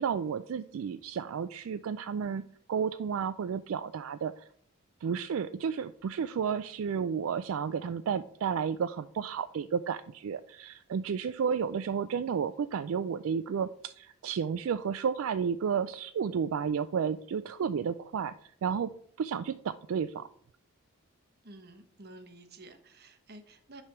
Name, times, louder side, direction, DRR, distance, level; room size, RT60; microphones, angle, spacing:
voice 1, 0.0-2.4 2.7-4.5 5.0-18.9 19.2-20.3, right 7 dB, 70° right, 11 dB, 0.3 m, -32 dB
voice 2, 21.4-23.8, right 2 dB, 50° right, 8 dB, 1.0 m, -51 dB
9.8 x 3.3 x 5.8 m, 0.63 s
head